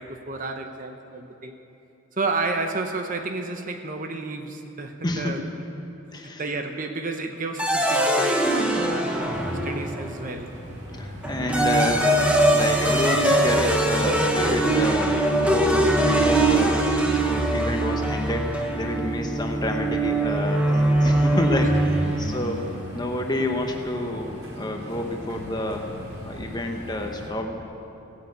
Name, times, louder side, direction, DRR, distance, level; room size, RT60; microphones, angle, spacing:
voice 1, 0.0-1.6 2.1-5.4 5.8-5.9 6.4-10.5 21.6-21.7, right 3 dB, 40° right, 5 dB, 0.9 m, -31 dB
voice 2, 5.0-5.5 6.1-6.4 10.9-25.9 26.2-27.7, left 1 dB, 20° left, 3 dB, 1.1 m, -29 dB
sound 1, 7.6-10.2 11.2-22.4, right 1 dB, 5° right, 1.1 m, -22 dB
sound 2, 9.3-27.3, equal, 85° right, 4.0 m, -38 dB
16.0 x 9.8 x 8.1 m, 2.9 s
head